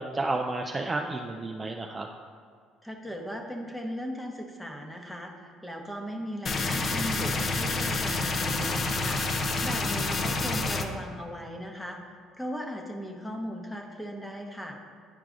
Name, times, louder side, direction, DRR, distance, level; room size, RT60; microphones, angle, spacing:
voice 1, 0.0-2.1, right 2 dB, 20° right, 2 dB, 0.4 m, -31 dB
voice 2, 2.8-14.8, equal, 5° left, 2 dB, 1.0 m, -38 dB
sound 1, 6.5-10.9, left 3 dB, 40° left, 0.6 m, -28 dB
10.0 x 4.7 x 2.5 m, 2.2 s
cardioid pair, 100°, 0 cm